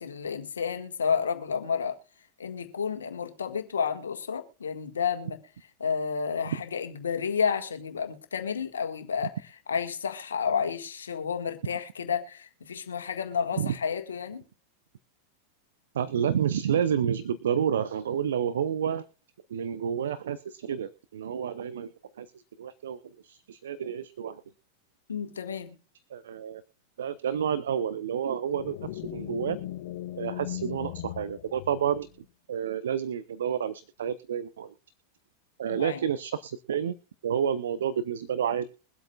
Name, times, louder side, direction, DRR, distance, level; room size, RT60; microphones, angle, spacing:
voice 1, 0.0-1.9 2.4-5.4 5.8-9.3 9.7-14.4 25.1-25.7 35.8-36.0, left 6 dB, 80° left, 1.7 m, -31 dB
voice 2, 15.9-19.0 19.5-22.3 22.6-24.4 26.1-26.6 27.0-29.6 30.2-32.1 32.5-34.7 35.6-37.0 37.2-38.7, right 8 dB, 70° right, 0.6 m, -30 dB
sound 1, 28.5-32.2, left 14 dB, 60° left, 0.8 m, -38 dB
22.5 x 8.1 x 2.3 m
figure-of-eight pair, 95°, 0 cm